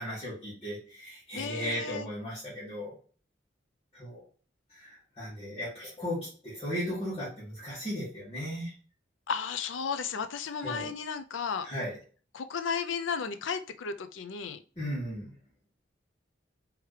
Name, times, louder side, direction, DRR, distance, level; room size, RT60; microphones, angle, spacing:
voice 1, 0.0-2.9 3.9-4.2 4.7-8.7 10.6-10.9 11.6-12.0 14.8-15.3, equal, 30° left, -11 dB, 2.0 m, -36 dB
voice 2, 1.3-2.1 9.3-11.7 12.3-14.6, left 6 dB, 90° left, 11 dB, 0.5 m, -34 dB
4.6 x 3.5 x 3.2 m, 0.39 s
head